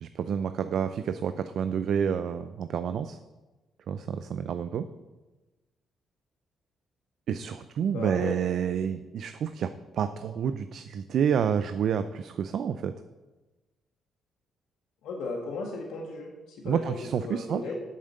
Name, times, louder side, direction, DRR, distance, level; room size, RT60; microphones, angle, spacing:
voice 1, 0.0-3.2 3.9-4.9 7.3-12.9 16.6-17.7, right 7 dB, 65° right, 10 dB, 0.4 m, -29 dB
voice 2, 7.9-8.4 15.0-17.8, left 3 dB, 85° left, -1 dB, 1.5 m, -36 dB
8.1 x 7.4 x 6.6 m, 1.2 s
cardioid pair, 90°, 0 cm